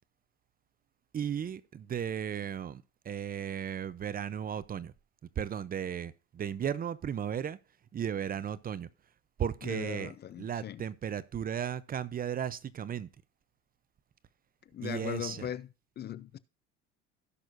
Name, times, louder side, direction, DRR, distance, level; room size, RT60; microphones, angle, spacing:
voice 1, 1.1-4.9 5.4-7.6 7.9-8.9 9.4-10.1 10.4-13.1 14.8-15.5, right 8 dB, 30° right, 0.6 m, -35 dB
voice 2, 9.6-10.8 14.7-15.7 16.0-16.4, left 11 dB, 35° left, 0.5 m, -39 dB
17.0 x 6.2 x 2.6 m
cardioid pair, 120°, 30 cm